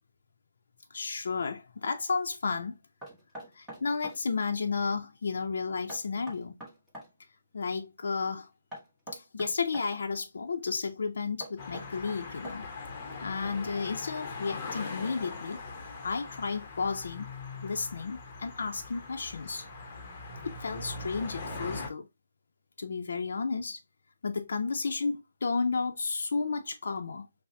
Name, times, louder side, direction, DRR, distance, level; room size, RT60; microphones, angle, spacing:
voice 1, 0.9-2.8 3.5-6.6 7.5-8.5 9.1-12.6 13.2-15.6 16.0-17.3 17.6-19.6 20.4-22.1 22.8-23.8 24.2-27.3, left 4 dB, 65° left, 0.5 m, -32 dB
Knock, 3.0-4.2 5.9-7.1 8.7-9.9 11.4-12.8, equal, 5° right, 1.0 m, -44 dB
sound 1, 11.6-21.9, left 3 dB, 25° left, 0.8 m, -41 dB
5.5 x 2.0 x 2.6 m
hypercardioid pair, 165°, 0 cm